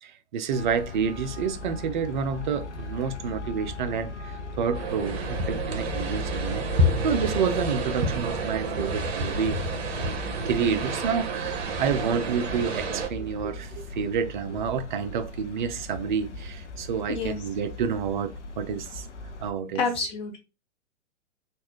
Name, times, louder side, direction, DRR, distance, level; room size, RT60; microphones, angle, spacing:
voice 1, 0.0-9.6 10.4-19.1 19.4-19.9, right 6 dB, 40° right, 0.5 m, -29 dB
Traffic noise roadway noise, 0.5-19.5, left 2 dB, 70° left, 0.7 m, -38 dB
sound 1, 4.7-13.1, right 2 dB, 55° right, 0.9 m, -29 dB
voice 2, 19.8-20.4, left 4 dB, 15° left, 0.6 m, -28 dB
3.2 x 2.4 x 2.9 m
figure-of-eight pair, 120°, 36 cm